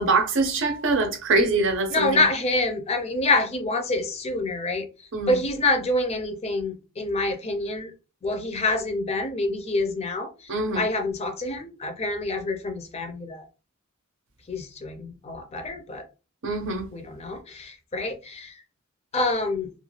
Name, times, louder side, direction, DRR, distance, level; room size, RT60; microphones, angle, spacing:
voice 1, 0.0-2.3 5.1-5.4 10.5-10.8 16.4-16.9, right 3 dB, 60° right, 0.6 m, -24 dB
voice 2, 1.9-4.9 5.3-7.9 8.2-13.5 14.5-16.0 16.9-18.6 19.1-19.7, left 2 dB, 30° left, 0.5 m, -27 dB
2.4 x 2.2 x 3.1 m
head